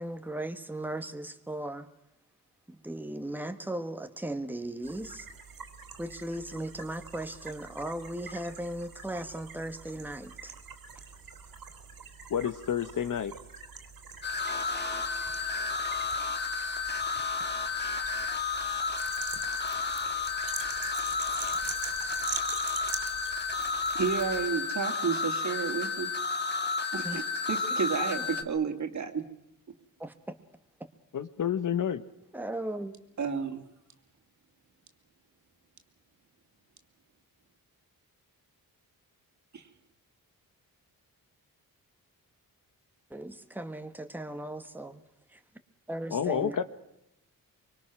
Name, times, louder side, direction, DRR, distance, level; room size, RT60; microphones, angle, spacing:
voice 1, 0.0-1.9 2.7-5.3 6.0-10.5 27.0-27.2 28.2-28.3 30.0-30.4 32.3-32.9 43.1-45.0 45.3-45.4 45.9-46.6, right 1 dB, 5° right, 7 dB, 1.4 m, -37 dB
sound 1, 4.8-24.5, right 6 dB, 75° right, 3.3 m, -44 dB
voice 2, 12.3-13.3 31.1-32.0 46.1-46.6, left 8 dB, 60° left, 12 dB, 1.3 m, -29 dB
sound 2, 14.2-28.4, left 4 dB, 30° left, 1.9 m, -32 dB
voice 3, 23.9-26.1 26.9-29.3 33.2-33.6 39.5-39.7, right 6 dB, 55° right, 6 dB, 2.6 m, -31 dB
24.5 x 24.5 x 6.2 m, 0.82 s
wide cardioid pair, 130°, 35 cm